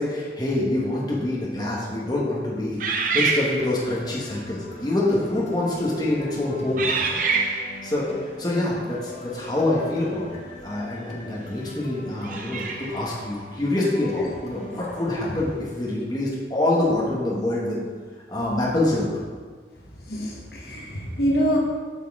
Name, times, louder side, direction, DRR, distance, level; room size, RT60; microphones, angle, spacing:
voice 1, 0.0-2.8 3.1-6.9 7.3-8.1 8.4-17.8 18.3-19.1, left 1 dB, 25° left, -5 dB, 1.4 m, -26 dB
sound 1, 2.8-4.0 4.8-5.0 5.7-6.0 6.8-7.9 10.6-10.7 12.2-13.1, right 4 dB, 50° right, 0.7 m, -26 dB
sound 2, 3.5-15.4, left 2 dB, 40° left, 0.8 m, -42 dB
voice 2, 19.8-21.6, equal, 60° left, -3 dB, 1.2 m, -26 dB
8.2 x 5.6 x 3.7 m, 1.5 s
head